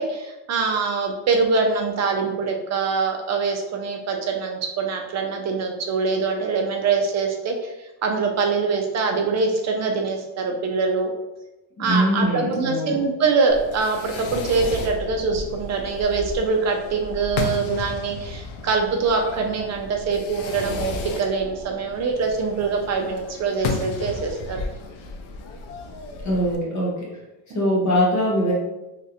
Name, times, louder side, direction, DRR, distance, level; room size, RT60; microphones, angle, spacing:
voice 1, 0.0-7.7 8.0-11.1 11.8-24.7, right 4 dB, 40° right, 3 dB, 0.4 m, -24 dB
voice 2, 11.8-13.0 26.2-27.1 27.5-28.5, equal, 40° left, -4 dB, 0.9 m, -22 dB
Fireworks, 13.5-26.6, left 3 dB, 90° left, 0.6 m, -33 dB
3.1 x 2.5 x 2.8 m, 0.98 s
cardioid pair, 140°, 45 cm